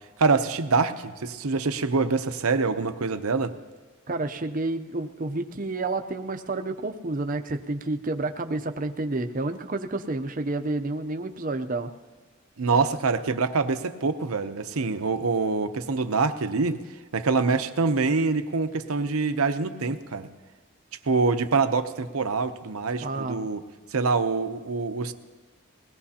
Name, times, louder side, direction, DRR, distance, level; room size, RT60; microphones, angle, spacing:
voice 1, 0.2-3.5 12.6-16.8 17.1-20.3 21.0-23.6 23.9-25.1, right 4 dB, 90° right, 10 dB, 0.8 m, -25 dB
voice 2, 4.1-11.9 23.0-23.5, right 2 dB, 40° right, 6 dB, 0.6 m, -30 dB
21.5 x 17.5 x 2.9 m, 1.3 s
head